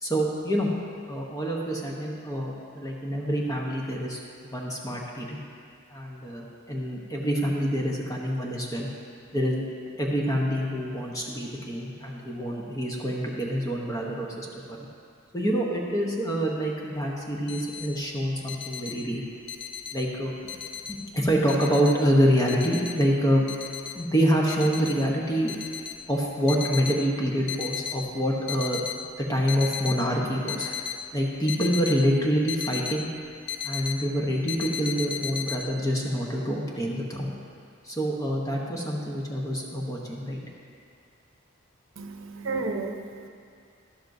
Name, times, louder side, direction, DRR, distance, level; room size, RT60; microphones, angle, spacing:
voice 1, 0.0-0.7 1.1-4.2 4.5-5.4 5.9-8.9 9.3-9.7 10.0-14.5 15.3-19.2 19.9-20.3 20.9-23.5 23.9-25.5 26.1-28.8 29.2-30.8 31.1-33.1 33.6-37.3 37.8-40.4, equal, 15° left, -2 dB, 0.9 m, -26 dB
sound 1, 17.0-17.1 17.3-17.9 18.2-20.1 20.5-21.2 21.5-23.2 23.5-24.0 24.5-25.0 25.4-27.0 27.4-28.0 28.4-29.0 29.3-30.0 30.5-33.0 33.2-34.1 34.5-35.6, left 8 dB, 55° left, 0.6 m, -35 dB
voice 2, 42.0-43.3, right 3 dB, 70° right, 5 dB, 0.8 m, -32 dB
12.5 x 12.0 x 2.7 m, 2.4 s
head